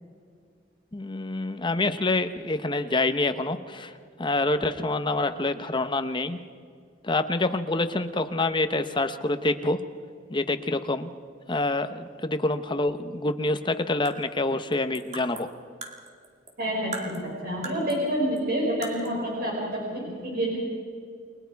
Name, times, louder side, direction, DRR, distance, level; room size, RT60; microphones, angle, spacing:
voice 1, 0.9-3.9 4.2-6.4 7.0-9.8 10.3-11.1 11.5-15.5, left 2 dB, 25° left, 9 dB, 0.9 m, -26 dB
sound 1, 13.8-16.6 16.9-18.1 18.4-18.5 18.8-19.2, right 3 dB, 40° right, 2.2 m, -41 dB
voice 2, 16.6-20.6, equal, 55° right, -2 dB, 4.8 m, -28 dB
30.0 x 21.0 x 4.7 m, 2.1 s
head